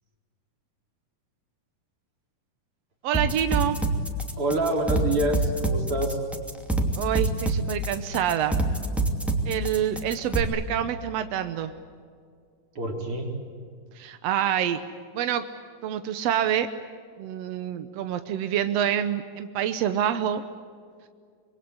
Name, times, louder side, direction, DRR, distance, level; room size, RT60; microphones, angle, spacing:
voice 1, 3.0-3.8 6.9-8.6 9.4-11.7 13.9-14.8 15.1-15.4 15.8-16.7 17.2-20.4, right 10 dB, 70° right, 10 dB, 1.5 m, -27 dB
sound 1, 3.1-10.4, right 2 dB, ahead, 1.9 m, -26 dB
voice 2, 4.4-6.2 12.8-13.3, right 1 dB, 40° right, 2 dB, 4.6 m, -26 dB
26.0 x 22.5 x 9.7 m, 2.2 s
omnidirectional pair, 4.0 m